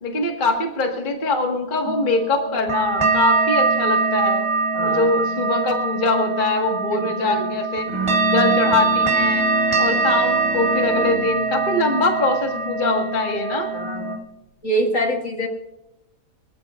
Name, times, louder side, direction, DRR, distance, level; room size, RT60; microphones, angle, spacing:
voice 1, 0.0-4.4 4.8-7.9 8.3-9.5 9.8-13.7, left 3 dB, 30° left, 2 dB, 1.6 m, -23 dB
sound 1, 1.8-14.2, right 4 dB, 15° right, 2.4 m, -22 dB
voice 2, 4.7-5.1 6.9-7.5 13.7-14.2 14.6-15.5, right 1 dB, 50° left, 2 dB, 2.2 m, -25 dB
Bowed string instrument, 7.9-13.0, right 2 dB, 80° right, 3.8 m, -32 dB
25.0 x 14.0 x 2.4 m, 0.91 s
omnidirectional pair, 1.8 m